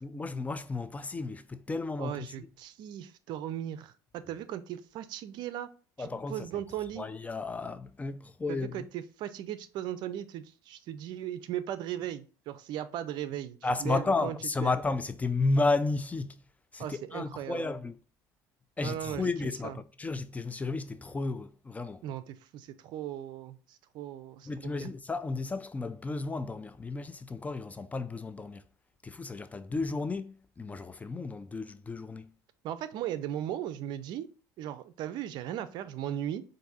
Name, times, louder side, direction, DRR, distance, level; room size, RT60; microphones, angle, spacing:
voice 1, 0.0-2.5 6.0-6.5 7.0-8.9 13.6-16.4 16.7-18.0 18.8-22.0 24.4-28.6 29.0-32.3, left 3 dB, 15° left, 0.4 m, -33 dB
voice 2, 2.0-5.7 6.0-7.1 8.5-14.7 16.8-17.6 18.8-19.3 19.6-19.8 22.0-24.9 32.6-34.3 34.6-36.4, right 11 dB, 65° right, 0.5 m, -37 dB
4.7 x 2.6 x 4.0 m
supercardioid pair, 95°, 8 cm